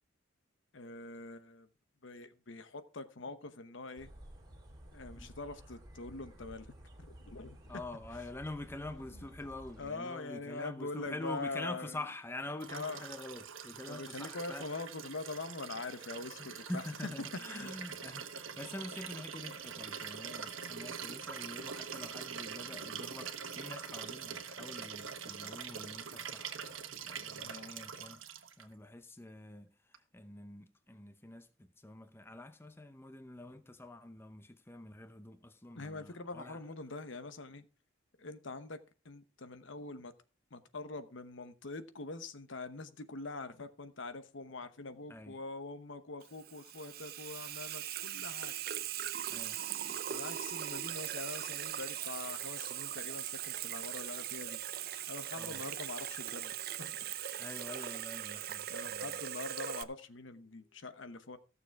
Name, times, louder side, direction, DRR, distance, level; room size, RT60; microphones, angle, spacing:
voice 1, 0.7-1.7 2.0-4.1 4.9-6.7 7.0-7.7 9.1-9.2 9.8-12.0 12.7-13.0 13.9-17.1 17.5-17.7 27.4-27.7 35.8-37.6 38.2-38.8 39.0-40.1 40.5-48.5 50.1-54.6 55.1-56.5 56.8-57.0 58.7-61.4, left 3 dB, 70° left, 1.0 m, -44 dB
sound 1, 4.0-9.9, right 1 dB, 20° right, 2.3 m, -53 dB
voice 2, 7.7-14.7 16.4-26.6 26.9-36.6 45.1-45.4 49.3-49.6 55.3-55.6 57.4-59.2, left 1 dB, 10° left, 0.7 m, -46 dB
Liquid, 12.6-28.6 29.9-30.0, right 7 dB, 80° right, 1.3 m, -44 dB
Water tap faucet / Sink (filling or washing), 46.2-59.8, right 11 dB, 50° right, 0.6 m, -40 dB
15.0 x 6.9 x 4.6 m
head